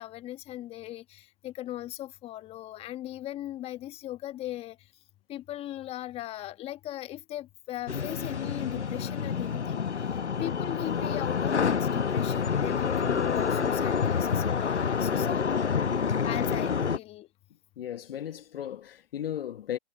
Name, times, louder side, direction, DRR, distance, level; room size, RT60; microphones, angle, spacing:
voice 1, 0.0-4.8 5.3-9.9 10.4-15.6 16.2-17.3, left 14 dB, 20° left, 1.3 m, -38 dB
sound 1, 7.9-17.0, left 6 dB, 90° left, 1.0 m, -28 dB
voice 2, 16.3-16.6 17.8-19.8, left 10 dB, 55° left, 1.1 m, -36 dB
hypercardioid pair, 130°, 33 cm